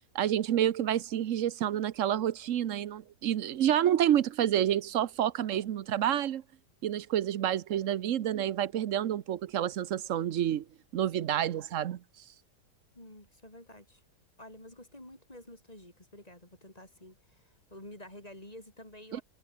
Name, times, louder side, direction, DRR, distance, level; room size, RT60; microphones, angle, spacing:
voice 1, 0.1-6.4 6.8-10.6 10.9-12.0 19.1-19.2, right 11 dB, 60° right, 0.9 m, -29 dB
voice 2, 12.9-14.0 14.4-19.2, left 1 dB, 20° left, 4.5 m, -50 dB
omnidirectional pair, 1.9 m